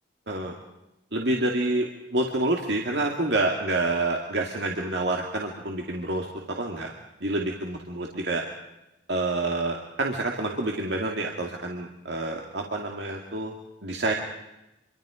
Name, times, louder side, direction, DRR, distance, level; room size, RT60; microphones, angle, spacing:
voice 1, 0.3-0.6 1.1-6.9 7.2-8.5 9.1-13.5 13.8-14.1, right 2 dB, 60° right, 1 dB, 2.4 m, -28 dB
27.5 x 24.0 x 5.1 m, 0.94 s
head